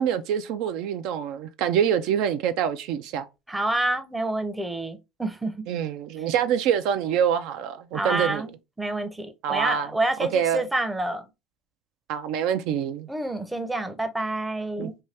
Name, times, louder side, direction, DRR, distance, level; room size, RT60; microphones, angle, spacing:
voice 1, 0.0-3.3 5.7-8.5 9.4-9.9 10.2-10.6 12.1-13.1 14.8-14.9, right 9 dB, 70° right, 0.3 m, -25 dB
voice 2, 3.5-5.5 7.9-11.3 13.1-15.0, right 1 dB, 10° right, 0.5 m, -28 dB
2.6 x 2.3 x 3.3 m
supercardioid pair, 95°, 0 cm